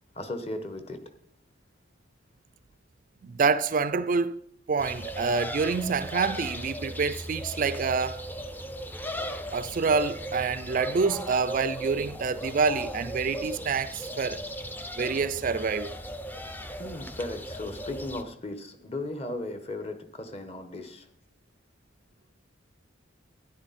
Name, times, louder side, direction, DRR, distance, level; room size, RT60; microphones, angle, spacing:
voice 1, 0.1-1.0 15.5-15.6 16.7-21.1, left 2 dB, 30° left, 1.2 m, -36 dB
voice 2, 3.2-4.4 4.7-8.2 9.5-14.4 15.0-16.0, right 4 dB, 45° right, 0.4 m, -27 dB
sound 1, 4.8-18.2, equal, 10° left, 0.6 m, -37 dB
13.0 x 10.5 x 4.2 m
head